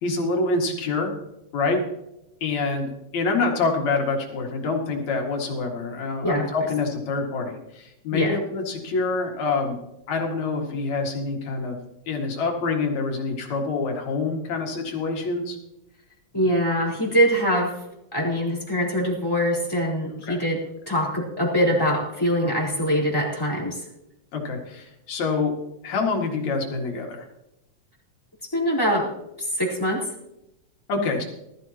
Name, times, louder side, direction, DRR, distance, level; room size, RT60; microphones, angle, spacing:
voice 1, 0.0-1.1 1.5-1.8 2.4-9.8 10.1-11.8 12.1-15.6 20.3-20.4 24.3-25.5 25.8-27.3 30.9-31.2, left 3 dB, 70° left, 1 dB, 3.3 m, -26 dB
voice 2, 16.3-17.7 18.1-20.6 20.9-23.8 28.5-29.0 29.6-30.0, equal, 5° left, -3 dB, 4.1 m, -23 dB
19.5 x 13.5 x 2.9 m, 0.85 s
omnidirectional pair, 3.3 m